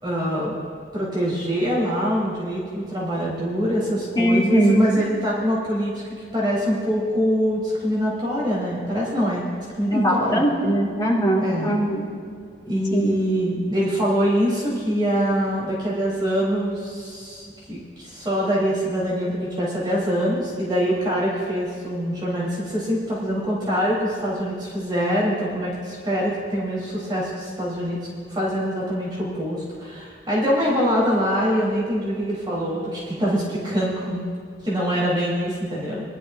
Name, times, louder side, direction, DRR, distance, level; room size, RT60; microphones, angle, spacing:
voice 1, 0.0-0.6 0.9-5.9 6.3-9.4 9.8-10.4 11.4-11.8 12.6-28.0 28.3-34.2 34.6-36.0, equal, 25° right, -7 dB, 3.8 m, -24 dB
voice 2, 4.2-4.9 9.9-12.1 12.9-13.1, right 1 dB, 25° left, -6 dB, 3.1 m, -20 dB
22.0 x 12.5 x 2.7 m, 2.2 s
head